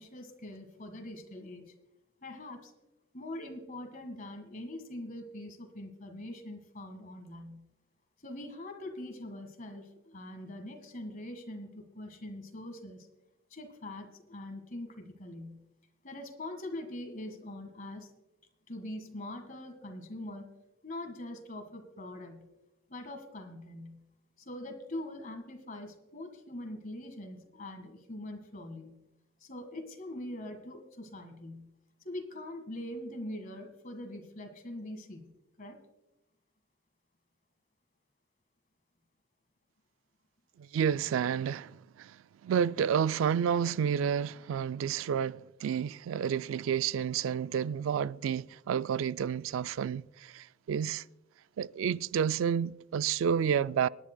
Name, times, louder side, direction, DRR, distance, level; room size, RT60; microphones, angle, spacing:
voice 1, 0.0-1.7 2.2-2.7 3.1-7.7 8.2-13.1 13.5-15.6 16.0-18.1 18.7-20.5 20.8-22.5 22.9-24.0 24.4-29.0 29.4-31.7 32.0-35.3 35.6-35.8, left 1 dB, 45° left, 1.7 m, -43 dB
voice 2, 40.6-51.0 51.6-53.9, right 8 dB, 80° right, 0.3 m, -30 dB
25.5 x 10.5 x 2.2 m
head